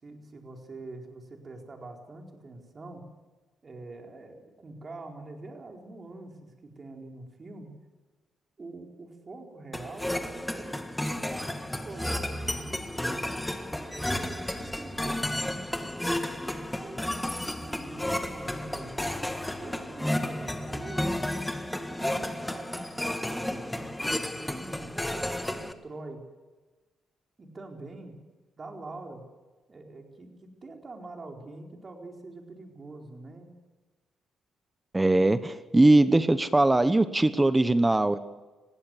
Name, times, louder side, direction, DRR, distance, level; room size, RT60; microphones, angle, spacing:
voice 1, 0.0-3.1 3.6-7.7 8.6-13.3 13.9-19.1 19.6-23.9 24.3-26.3 27.4-28.2 28.6-29.2 29.7-33.5, right 2 dB, 35° right, 2 dB, 4.4 m, -44 dB
sound 1, 9.7-25.7, left 1 dB, 5° left, 1.6 m, -32 dB
voice 2, 34.9-38.2, right 2 dB, 15° right, 13 dB, 1.0 m, -21 dB
20.0 x 16.0 x 7.9 m, 1.3 s
cardioid pair, 90°, 0 cm